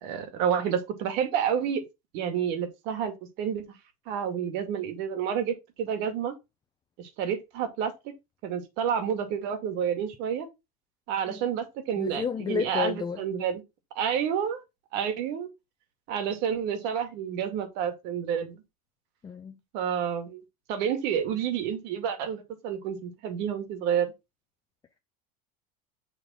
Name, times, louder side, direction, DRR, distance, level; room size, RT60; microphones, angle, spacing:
voice 1, 0.0-1.8 2.1-3.1 3.4-3.6 4.1-6.3 7.0-7.9 8.4-10.5 11.1-13.6 14.0-14.6 14.9-15.5 16.1-18.6 19.7-20.4 20.7-24.1, right 8 dB, 60° right, 2.4 m, -29 dB
voice 2, 12.0-13.2 19.2-19.6, left 7 dB, 20° left, 0.8 m, -31 dB
6.7 x 3.6 x 6.3 m
supercardioid pair, 120°, 19 cm